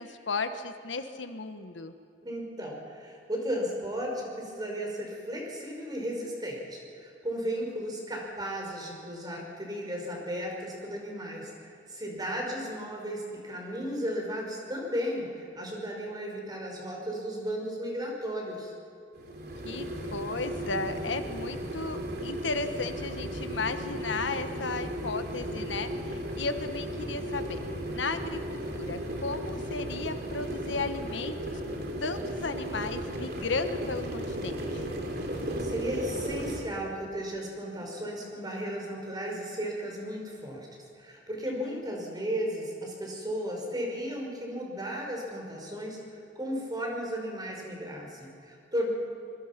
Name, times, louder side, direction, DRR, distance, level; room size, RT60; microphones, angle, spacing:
voice 1, 0.0-1.9 19.6-27.6 27.9-34.8 41.5-41.8, left 3 dB, 75° left, 8 dB, 1.3 m, -35 dB
voice 2, 2.2-18.7 35.4-48.9, equal, 20° right, 0 dB, 5.2 m, -35 dB
sound 1, 19.1-36.6, right 1 dB, 55° right, 3.2 m, -35 dB
25.5 x 22.5 x 6.0 m, 2.5 s
head